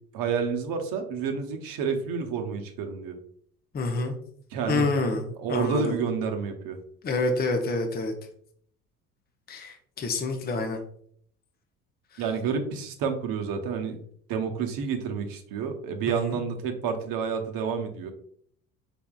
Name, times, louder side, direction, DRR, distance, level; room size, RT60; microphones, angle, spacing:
voice 1, 0.1-3.2 4.5-4.9 5.4-6.8 12.2-14.0 14.3-18.1, right 6 dB, 50° right, 5 dB, 0.8 m, -29 dB
voice 2, 3.7-4.2 4.7-6.0 7.0-8.1 9.5-10.8 12.1-12.2 16.1-16.4, left 3 dB, 20° left, 4 dB, 0.7 m, -28 dB
4.2 x 3.5 x 2.3 m, 0.62 s
hypercardioid pair, 70°, 43 cm